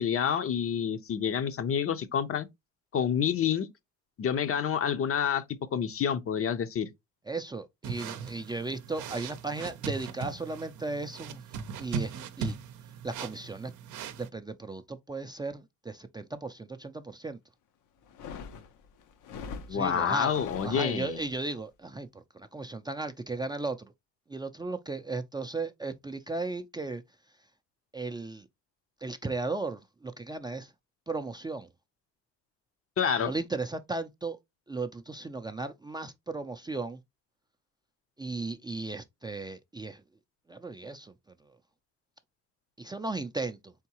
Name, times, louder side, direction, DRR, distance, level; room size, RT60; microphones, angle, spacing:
voice 1, 0.0-2.5 2.9-3.7 4.2-5.4 5.7-6.9 19.7-21.2 33.0-33.3, left 8 dB, 50° left, 0.6 m, -28 dB
voice 2, 7.3-11.4 11.8-12.6 13.0-13.7 14.2-17.4 19.7-23.9 24.3-27.0 27.9-28.5 29.0-30.7 31.1-31.7 33.2-34.4 34.7-37.0 38.2-40.0 40.5-41.1 42.8-43.7, right 3 dB, 15° right, 0.4 m, -36 dB
sound 1, 7.8-14.3, right 6 dB, 75° right, 0.6 m, -39 dB
sound 2, 18.0-21.3, left 6 dB, 85° left, 0.7 m, -43 dB
3.8 x 3.6 x 2.8 m
cardioid pair, 90°, 30 cm